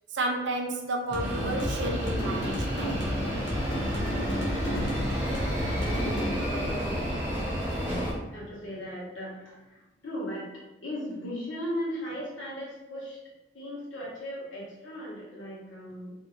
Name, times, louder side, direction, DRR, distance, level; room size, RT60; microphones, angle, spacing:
voice 1, 0.1-3.1, right 2 dB, 60° right, 0.4 m, -31 dB
sound 1, 1.1-8.1, equal, 60° left, 0.8 m, -32 dB
sound 2, 1.2-8.1, equal, 10° right, 0.6 m, -32 dB
voice 2, 3.7-4.1 5.2-7.0 8.3-10.5 10.8-13.2 13.5-16.1, equal, 75° left, 1.1 m, -37 dB
3.0 x 2.7 x 2.4 m
head